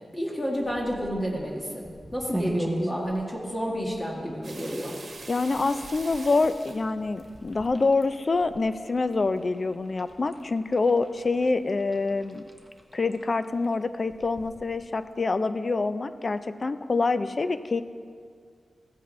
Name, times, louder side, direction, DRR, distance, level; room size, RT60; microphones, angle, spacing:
voice 1, 0.1-1.9 2.1-4.9, equal, 20° left, -3 dB, 1.6 m, -30 dB
sound 1, 0.5-15.1, right 1 dB, 5° right, 0.9 m, -41 dB
sound 2, 4.4-8.1 8.6-9.0 9.4-9.5 9.9-10.5 11.0-11.1 11.6-11.7 11.9-12.2 12.8-12.9 13.6-13.7, right 3 dB, 60° right, 1.2 m, -44 dB
voice 2, 5.3-12.4 12.9-17.8, left 3 dB, 40° left, 12 dB, 0.4 m, -26 dB
14.5 x 8.1 x 3.2 m, 2.1 s
wide cardioid pair, 100°, 0 cm